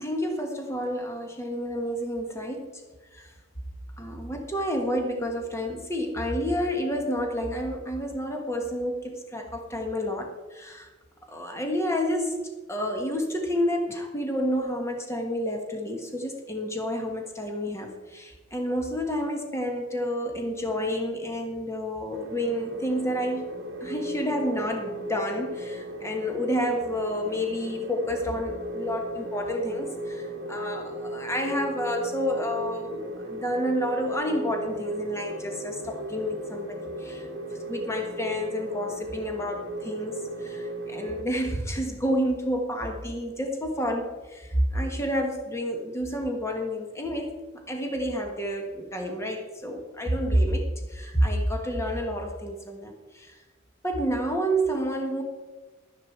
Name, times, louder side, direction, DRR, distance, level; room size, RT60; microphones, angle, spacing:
voice 1, 0.0-2.7 3.1-3.3 4.0-10.9 11.3-23.5 23.8-37.3 37.6-53.4 53.8-55.2, equal, 15° left, 3 dB, 1.4 m, -29 dB
sound 1, 22.1-41.2, right 1 dB, 55° right, 1.2 m, -36 dB
12.0 x 9.6 x 4.6 m, 1.2 s
head